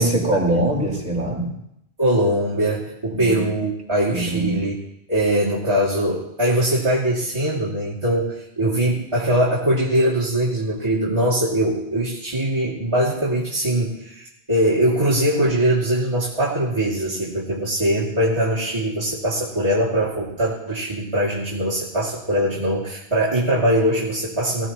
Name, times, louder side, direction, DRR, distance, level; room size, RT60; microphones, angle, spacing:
voice 1, 0.0-1.5 3.1-3.5 4.1-4.6, right 1 dB, 45° right, -3 dB, 5.0 m, -22 dB
voice 2, 2.0-4.8 5.1-24.7, right 1 dB, 25° right, -9 dB, 2.7 m, -21 dB
20.0 x 16.0 x 3.0 m, 0.80 s
omnidirectional pair, 1.1 m